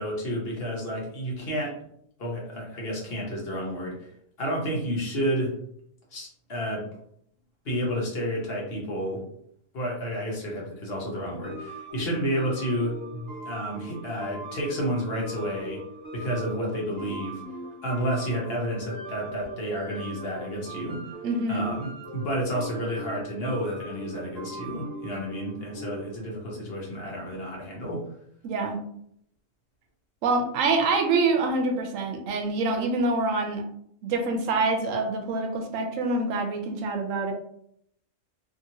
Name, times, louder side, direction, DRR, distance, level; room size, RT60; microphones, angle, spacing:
voice 1, 0.0-1.8 2.2-4.1 4.4-5.5 6.1-6.9 7.6-9.2 9.7-15.8 16.1-17.4 17.8-21.0 21.5-28.0, equal, 55° left, -3 dB, 1.0 m, -30 dB
sound 1, 11.4-26.2, right 1 dB, 20° left, 1.0 m, -40 dB
voice 2, 21.2-21.8 28.4-28.8 30.2-33.6 34.0-37.3, right 3 dB, 85° right, 3 dB, 1.0 m, -26 dB
2.8 x 2.8 x 2.7 m, 0.71 s
omnidirectional pair, 1.3 m